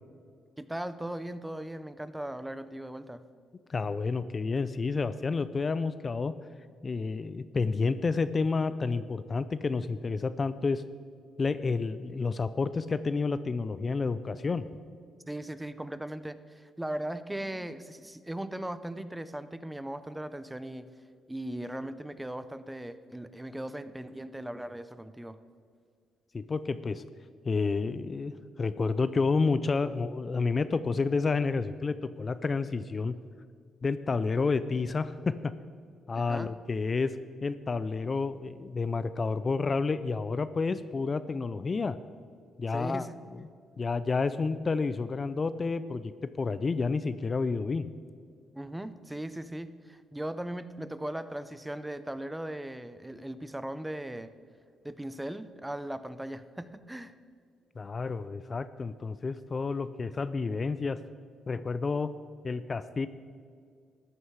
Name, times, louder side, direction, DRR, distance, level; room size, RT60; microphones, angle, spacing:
voice 1, 0.6-3.2 15.3-20.9 21.3-25.4 36.1-36.5 42.7-43.2 48.6-54.3 54.8-57.1, right 1 dB, 10° right, 13 dB, 0.6 m, -38 dB
voice 2, 3.7-6.3 6.8-10.8 11.4-14.7 26.3-27.0 27.4-33.1 33.8-35.5 36.1-37.1 37.4-42.0 42.6-43.4 43.8-46.1 46.4-47.9 57.8-61.0 61.5-62.1 62.4-63.1, left 4 dB, 35° left, 13 dB, 0.4 m, -30 dB
14.0 x 9.6 x 4.8 m, 2.2 s
cardioid pair, 90°, 0 cm